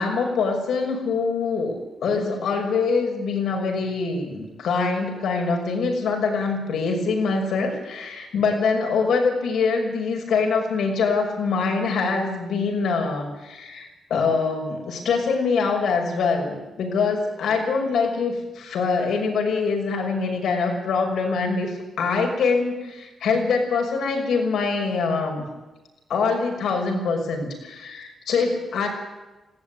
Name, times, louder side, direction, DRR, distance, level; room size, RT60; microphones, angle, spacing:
voice 1, 0.0-1.8 2.0-25.4 26.1-28.9, left 4 dB, 80° left, 3 dB, 6.1 m, -24 dB
19.5 x 16.5 x 9.6 m, 1.1 s
cardioid pair, 110°, 0 cm